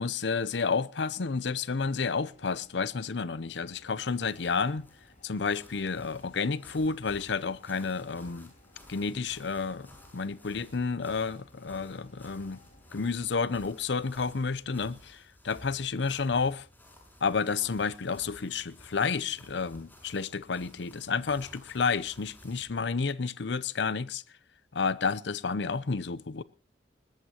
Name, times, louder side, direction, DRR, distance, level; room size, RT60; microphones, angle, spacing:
voice 1, 0.0-4.8 5.2-8.5 8.9-12.6 12.9-16.7 17.2-24.2 24.7-26.4, left 5 dB, 75° left, 0.7 m, -30 dB
sound 1, 1.0-13.4, left 1 dB, 45° left, 4.3 m, -61 dB
sound 2, 3.7-22.8, left 1 dB, 10° left, 6.3 m, -55 dB
21.0 x 19.0 x 2.9 m
head